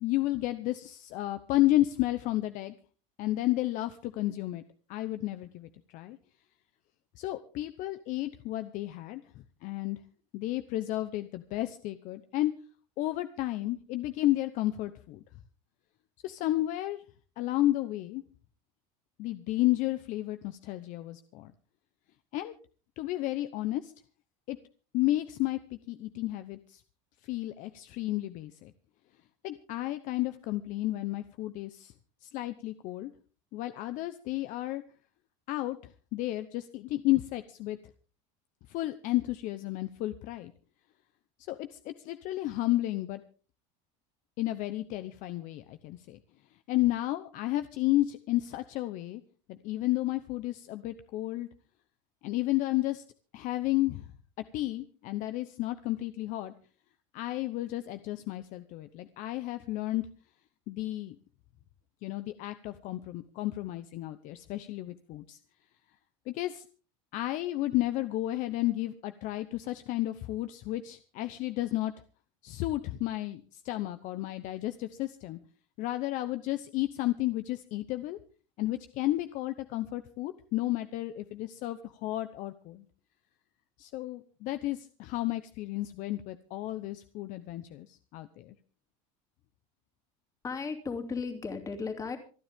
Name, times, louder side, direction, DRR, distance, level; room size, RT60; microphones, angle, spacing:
voice 1, 0.0-2.7 3.2-4.6 4.9-6.2 7.2-10.0 10.3-12.5 13.0-15.2 16.2-17.0 17.4-18.2 19.2-21.5 22.3-22.5 23.0-23.9 24.5-24.6 24.9-25.6 25.9-26.8 27.2-28.7 29.4-31.9 32.2-33.1 33.5-34.8 35.5-35.8 36.1-37.8 38.7-40.5 41.5-43.2 44.4-46.2 46.7-49.2 49.5-51.5 52.2-53.0 53.3-54.1 54.5-56.5 57.1-60.0 60.7-61.2 62.0-65.4 66.3-66.6 67.1-71.9 72.4-75.4 75.8-78.2 78.6-82.8 83.8-88.5, left 16 dB, 50° left, 11 dB, 0.9 m, -32 dB
voice 2, 90.4-92.2, left 5 dB, 20° left, 6 dB, 2.6 m, -35 dB
27.0 x 10.0 x 3.6 m, 0.38 s
cardioid pair, 150°, 17 cm